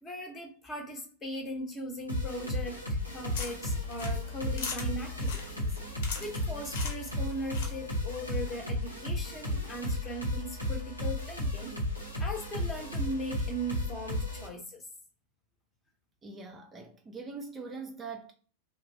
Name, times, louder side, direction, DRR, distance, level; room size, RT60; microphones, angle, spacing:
voice 1, 0.0-5.7 6.2-11.8 12.2-14.9, right 1 dB, 20° left, 0.9 m, -39 dB
sound 1, 2.1-14.5, left 1 dB, 85° left, 0.9 m, -34 dB
sound 2, 3.0-8.1, left 5 dB, 55° left, 0.7 m, -42 dB
voice 2, 16.2-18.3, right 4 dB, 20° right, 0.4 m, -42 dB
2.9 x 2.1 x 2.6 m
figure-of-eight pair, 90°, 0 cm